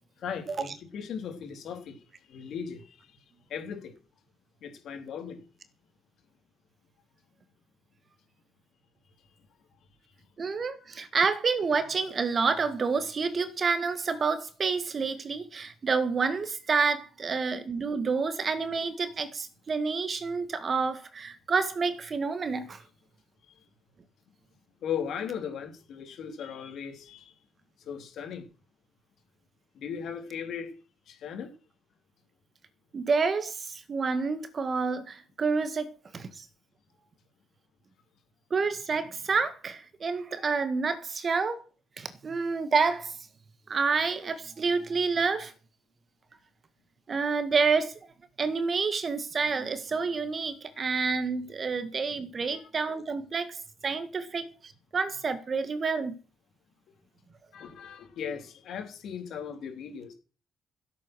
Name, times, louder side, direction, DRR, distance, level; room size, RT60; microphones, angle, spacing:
voice 1, 0.2-3.2 3.5-3.9 4.6-5.4 23.5-23.6 24.8-27.4 27.8-28.5 29.7-30.7 31.1-31.6 41.1-41.2 50.7-50.8 52.5-52.7 57.5-60.1, left 7 dB, 70° left, 3.6 m, -38 dB
voice 2, 10.4-22.8 32.9-36.5 38.5-41.6 42.0-43.1 43.7-45.5 47.1-47.9 48.4-53.6 53.8-56.2, right 4 dB, 40° right, 1.8 m, -28 dB
14.5 x 8.4 x 6.3 m
cardioid pair, 90°, 0 cm